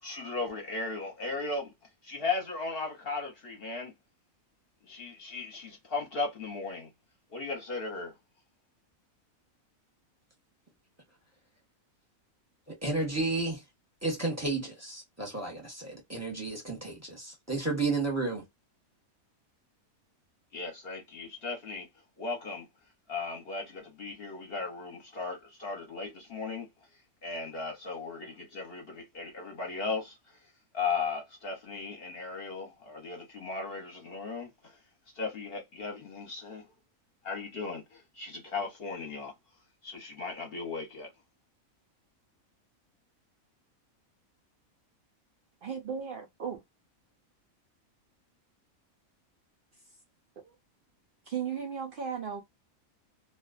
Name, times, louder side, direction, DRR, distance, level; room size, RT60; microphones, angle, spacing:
voice 1, 0.0-1.7 2.0-3.9 4.8-6.9 7.3-8.1 20.5-21.9 22.2-22.7 23.1-26.7 27.2-34.8 35.1-36.7 37.2-39.3 39.8-41.1, left 4 dB, 50° left, 0.8 m, -36 dB
voice 2, 12.7-13.6 14.0-18.5, right 3 dB, 15° right, 0.8 m, -32 dB
voice 3, 45.6-46.6 50.4-50.5 51.3-52.4, right 7 dB, 90° right, 0.4 m, -36 dB
2.4 x 2.2 x 2.3 m
omnidirectional pair, 1.5 m